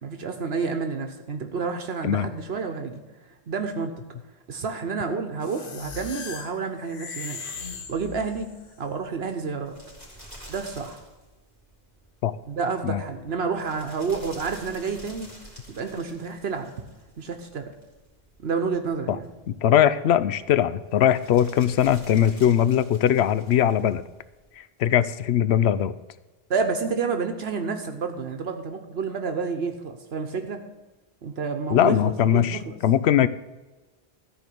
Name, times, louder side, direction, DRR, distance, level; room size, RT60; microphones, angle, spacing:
voice 1, 0.0-3.0 3.5-4.0 4.5-7.4 7.9-8.5 8.8-9.7 10.5-11.0 12.4-15.3 15.7-16.7 17.2-17.7 18.4-19.3 26.5-30.6 31.2-32.7, right 5 dB, 75° right, 6 dB, 1.2 m, -29 dB
sound 1, 5.4-8.7, left 4 dB, 60° left, 1.1 m, -38 dB
sound 2, 7.8-24.6, right 1 dB, 15° left, 3.4 m, -50 dB
voice 2, 19.5-24.0 24.6-25.9 31.7-33.3, left 10 dB, 85° left, 15 dB, 0.9 m, -21 dB
14.0 x 4.7 x 8.5 m, 1.1 s
omnidirectional pair, 1.1 m